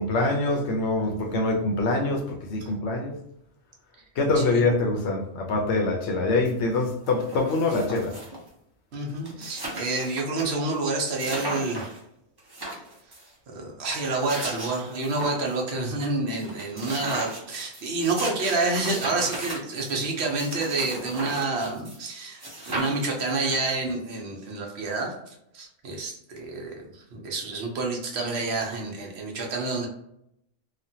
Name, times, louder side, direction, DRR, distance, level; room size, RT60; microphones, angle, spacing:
voice 1, 0.0-3.2 4.2-8.2, left 2 dB, 90° left, 2 dB, 0.9 m, -24 dB
sound 1, 6.4-6.5 6.8-8.5 8.9-9.0 9.2-10.4 10.8-10.9 11.2-12.0 12.4-13.3 14.0-15.6 16.0-16.1 16.4-22.1 22.4-23.9, right 1 dB, 25° right, 0.6 m, -36 dB
voice 2, 8.9-12.0 13.5-25.1 25.5-29.9, right 3 dB, 75° right, 0 dB, 1.0 m, -28 dB
3.2 x 2.1 x 2.7 m, 0.77 s
omnidirectional pair, 1.1 m